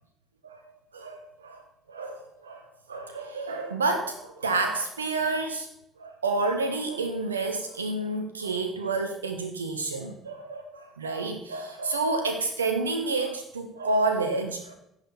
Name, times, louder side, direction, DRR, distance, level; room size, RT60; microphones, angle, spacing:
voice 1, 0.4-5.7 6.0-14.7, right 3 dB, 90° right, 7 dB, 0.6 m, -29 dB
15.5 x 5.7 x 4.2 m, 0.81 s
figure-of-eight pair, 50°, 0 cm